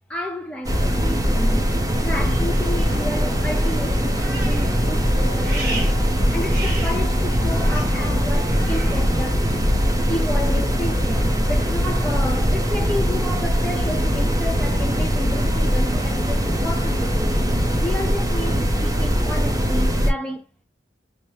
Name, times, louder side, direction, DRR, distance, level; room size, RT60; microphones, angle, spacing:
voice 1, 0.1-6.0 6.3-9.5 10.1-17.5 17.8-20.4, left 1 dB, 5° left, 0.5 m, -31 dB
sound 1, 0.6-20.1, equal, 20° right, 0.9 m, -21 dB
sound 2, 2.1-9.0, right 1 dB, 55° right, 1.3 m, -35 dB
5.2 x 2.2 x 3.0 m
head